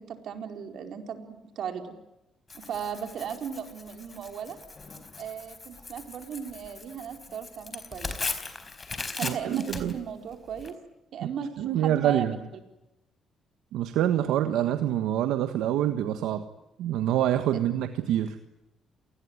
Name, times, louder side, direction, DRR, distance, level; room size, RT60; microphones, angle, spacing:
voice 1, 0.0-1.9 2.5-4.6 5.2-8.2 9.1-10.7 11.1-12.5 17.5-17.6, right 7 dB, 70° right, 6 dB, 4.5 m, -36 dB
Tearing, 2.5-10.7, left 4 dB, 30° left, 4.3 m, -39 dB
voice 2, 9.2-9.9 11.6-12.4 13.7-16.4 16.8-18.4, right 11 dB, 90° right, 9 dB, 1.5 m, -26 dB
28.5 x 20.0 x 9.6 m, 0.93 s
cardioid pair, 90°, 0 cm